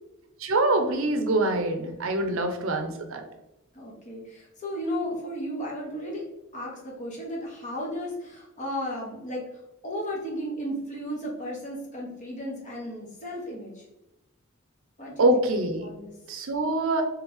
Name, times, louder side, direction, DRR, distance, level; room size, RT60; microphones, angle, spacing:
voice 1, 0.4-3.2 15.2-15.9 16.3-17.0, right 2 dB, 65° right, 6 dB, 0.6 m, -24 dB
voice 2, 3.7-6.2 6.5-9.4 9.8-13.8 15.0-15.5 15.8-16.1, equal, 35° left, -3 dB, 1.2 m, -34 dB
3.3 x 3.2 x 3.5 m, 0.95 s
head